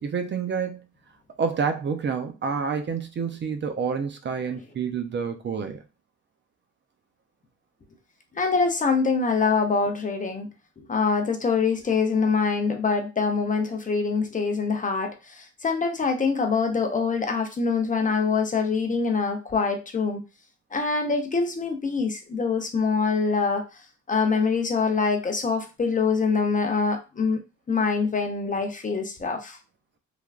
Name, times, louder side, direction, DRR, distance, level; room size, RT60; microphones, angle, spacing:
voice 1, 0.0-0.9 1.4-5.8, right 6 dB, 40° right, 0.4 m, -28 dB
voice 2, 8.3-20.2 20.7-23.8 24.1-27.4 27.7-29.6, left 4 dB, 25° left, 0.5 m, -24 dB
3.2 x 2.2 x 2.3 m
cardioid pair, 90°, 30 cm